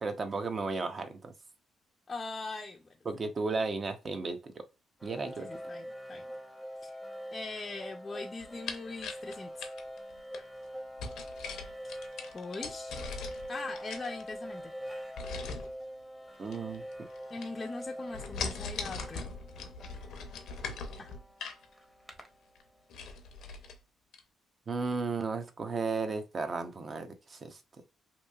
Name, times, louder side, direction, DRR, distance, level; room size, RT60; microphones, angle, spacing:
voice 1, 0.0-1.3 3.0-4.6 5.0-5.5 16.4-16.8 24.7-27.6, right 4 dB, 40° right, 0.6 m, -34 dB
voice 2, 2.1-2.9 5.4-6.2 6.8-7.0 7.3-9.6 11.8-12.0 12.3-12.9 13.5-14.7 17.3-19.3 21.0-21.1, left 3 dB, 30° left, 0.4 m, -41 dB
sound 1, 5.0-23.0, equal, ahead, 0.7 m, -44 dB
sound 2, 8.4-10.4 11.0-13.5 13.8-14.6 15.2-15.7 16.5-17.2 17.4-17.8 18.1-21.6 22.1-22.2 22.5-22.6 22.9-23.8 24.1-24.2, left 4 dB, 75° left, 0.6 m, -40 dB
3.0 x 2.6 x 2.3 m
cardioid pair, 90°, 0 cm